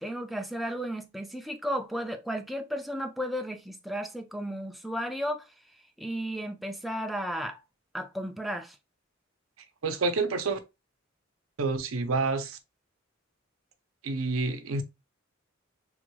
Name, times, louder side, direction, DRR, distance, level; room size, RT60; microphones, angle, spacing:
voice 1, 0.0-5.4 6.0-7.6 7.9-8.8, equal, ahead, 0.3 m, -34 dB
voice 2, 9.8-10.6 11.6-12.6 14.0-14.8, right 3 dB, 85° right, 0.6 m, -28 dB
3.5 x 2.3 x 3.0 m
head